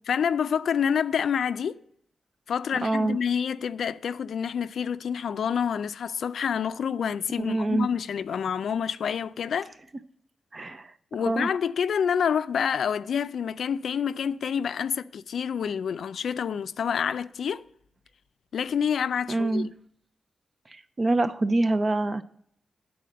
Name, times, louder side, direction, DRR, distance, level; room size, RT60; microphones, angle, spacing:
voice 1, 0.1-1.8 2.5-9.7 11.1-17.6 18.5-19.7, left 7 dB, 80° left, 0.3 m, -28 dB
voice 2, 2.8-3.2 7.4-7.9 10.5-10.9 11.2-11.5 19.3-19.7 20.7-22.2, right 2 dB, 35° right, 0.6 m, -25 dB
10.0 x 4.2 x 7.5 m
cardioid pair, 80°, 0 cm